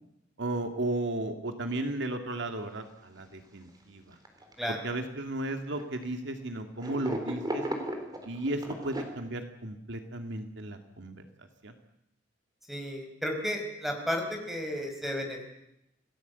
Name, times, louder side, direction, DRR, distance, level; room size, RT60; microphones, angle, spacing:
voice 1, 0.4-4.2 4.8-7.6 8.3-11.2 11.6-11.7, right 2 dB, 65° right, 6 dB, 2.2 m, -34 dB
sound 1, 2.8-2.9 3.2-3.3 4.1-4.8 5.7-6.0 6.8-9.0, right 1 dB, 20° right, 4.0 m, -35 dB
voice 2, 12.7-15.5, equal, ahead, 3 dB, 4.8 m, -33 dB
27.5 x 18.5 x 8.2 m, 0.84 s
head